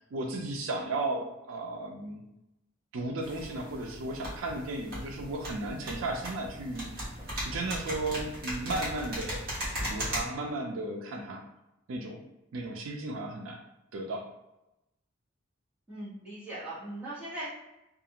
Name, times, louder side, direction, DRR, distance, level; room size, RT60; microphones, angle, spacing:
voice 1, 0.0-2.2 2.9-7.0 7.4-9.5 9.9-11.4 11.9-12.2 12.5-13.6 13.9-14.3, right 2 dB, 85° right, 2 dB, 0.4 m, -35 dB
sound 1, 3.2-10.2, equal, 50° right, 1.3 m, -38 dB
voice 2, 15.9-17.5, right 1 dB, 5° right, -11 dB, 1.1 m, -39 dB
2.5 x 2.4 x 2.8 m, 0.91 s
head